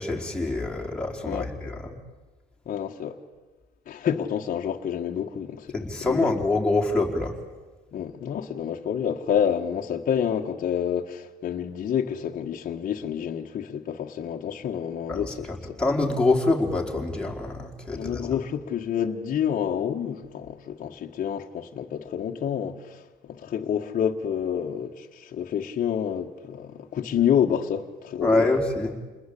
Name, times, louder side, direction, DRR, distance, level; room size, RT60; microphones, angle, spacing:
voice 1, 0.0-2.0 5.7-7.3 15.1-18.3 28.2-28.9, left 2 dB, 5° left, 4.6 m, -25 dB
voice 2, 2.7-3.2 3.9-6.3 7.9-15.8 17.9-28.3, left 8 dB, 50° left, 1.7 m, -28 dB
29.0 x 20.5 x 8.6 m
cardioid pair, 110°, 17 cm